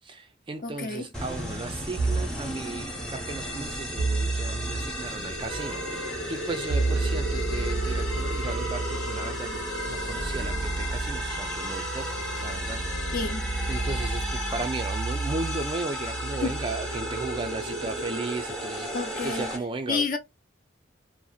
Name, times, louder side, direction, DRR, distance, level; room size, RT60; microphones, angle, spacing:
voice 1, 0.0-13.2 13.7-20.1, right 3 dB, 25° right, 0.3 m, -36 dB
voice 2, 0.6-1.1 13.1-13.5 16.4-16.6 18.9-19.5 19.9-20.2, left 4 dB, 45° left, 0.5 m, -29 dB
sound 1, 1.1-19.6, equal, 5° left, 0.8 m, -34 dB
sound 2, 2.0-2.4 4.0-4.9 6.7-18.1, right 3 dB, 90° right, 0.4 m, -32 dB
sound 3, 5.5-14.6, equal, 90° left, 1.1 m, -35 dB
2.7 x 2.0 x 2.3 m
head